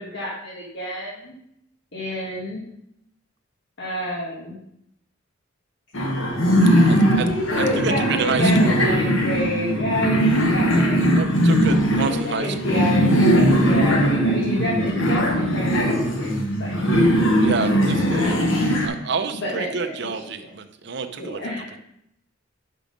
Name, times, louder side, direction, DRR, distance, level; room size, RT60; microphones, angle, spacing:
voice 1, 0.0-1.3 1.9-2.6 3.8-4.6 6.7-11.3 12.0-16.3 16.6-16.8 18.2-18.6 19.4-20.2 21.2-21.8, left 1 dB, 60° left, -5 dB, 1.6 m, -29 dB
sound 1, 5.9-18.9, equal, 80° left, 1.3 m, -19 dB
voice 2, 6.8-7.3 7.6-8.8 10.9-12.9 17.4-21.4, right 5 dB, 60° right, 7 dB, 0.7 m, -29 dB
6.1 x 5.7 x 5.1 m, 0.77 s
head